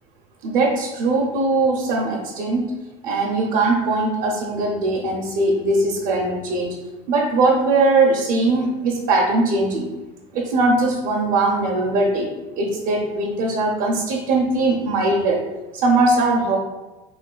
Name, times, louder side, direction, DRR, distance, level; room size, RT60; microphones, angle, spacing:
voice 1, 0.4-2.6 3.0-6.7 7.1-9.9 10.3-12.3 12.6-15.4 15.7-16.6, right 2 dB, 60° right, -2 dB, 0.7 m, -20 dB
3.5 x 3.1 x 2.2 m, 1.1 s
hypercardioid pair, 80°, 19 cm